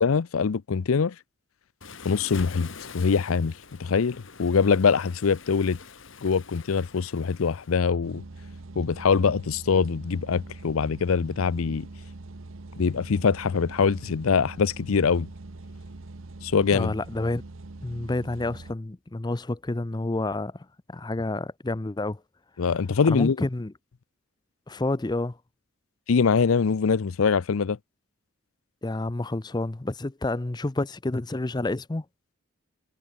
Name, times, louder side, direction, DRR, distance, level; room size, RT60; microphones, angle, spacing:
voice 1, 0.0-1.1 2.0-2.7 2.9-3.5 3.8-5.8 6.2-8.2 8.8-11.9 12.8-15.3 16.4-16.9 22.6-23.4 26.1-27.8, left 5 dB, 80° left, 0.5 m, -23 dB
Waves surf, 1.8-7.7, left 4 dB, 60° left, 1.6 m, -45 dB
sound 1, 8.0-18.7, right 2 dB, 70° right, 1.0 m, -43 dB
voice 2, 16.7-17.4 17.8-22.2 23.1-23.7 24.7-25.4 28.8-32.0, left 2 dB, 20° left, 0.5 m, -29 dB
head